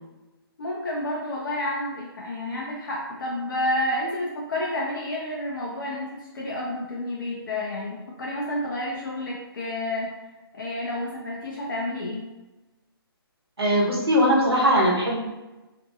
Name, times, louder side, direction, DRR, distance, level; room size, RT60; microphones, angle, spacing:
voice 1, 0.6-10.1 10.5-12.3, left 1 dB, 55° left, -3 dB, 0.5 m, -30 dB
voice 2, 13.6-15.2, equal, 75° right, -3 dB, 0.9 m, -20 dB
2.6 x 2.1 x 2.6 m, 1.1 s
figure-of-eight pair, 135°, 13 cm